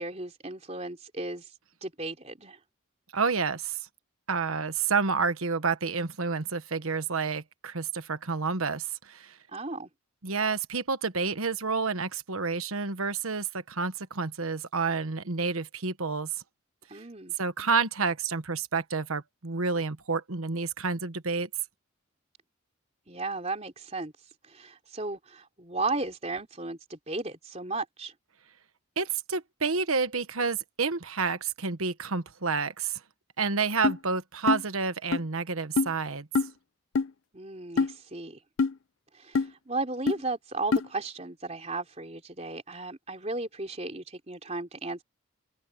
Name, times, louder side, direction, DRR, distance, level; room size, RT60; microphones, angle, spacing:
voice 1, 0.0-1.5 1.8-2.6 9.5-9.9 16.9-17.3 23.1-24.1 24.5-28.1 37.3-38.4 39.1-45.0, right 3 dB, 30° right, 3.4 m, -35 dB
voice 2, 3.1-3.8 4.3-9.4 10.2-16.3 17.4-21.5 29.0-33.0 33.4-36.3, right 4 dB, 85° right, 1.3 m, -29 dB
sound 1, 33.8-34.0 34.5-34.6 35.1-35.2 35.8-35.9 36.4-36.5 37.0-37.1 37.8-37.9 38.6-38.7 39.4-39.5 40.1-40.2 40.7-40.9, left 4 dB, 70° left, 0.5 m, -24 dB
open air
head